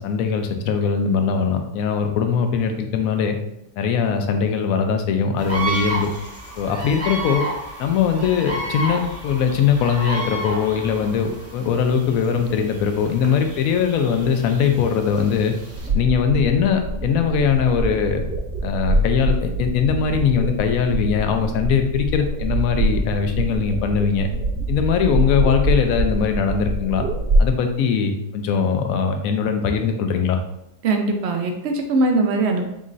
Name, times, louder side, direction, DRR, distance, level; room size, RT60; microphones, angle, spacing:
voice 1, 0.0-3.4 3.8-6.1 6.6-7.4 7.8-15.5 15.9-18.2 18.6-24.3 24.7-27.0 27.4-30.4, left 6 dB, 70° left, 6 dB, 1.0 m, -21 dB
sound 1, 5.4-15.9, right 1 dB, 15° right, 0.6 m, -32 dB
sound 2, 15.7-27.5, right 1 dB, 50° right, 1.0 m, -24 dB
voice 2, 30.8-32.6, right 2 dB, 65° right, 4 dB, 0.6 m, -21 dB
4.1 x 3.8 x 2.5 m, 0.84 s
omnidirectional pair, 1.6 m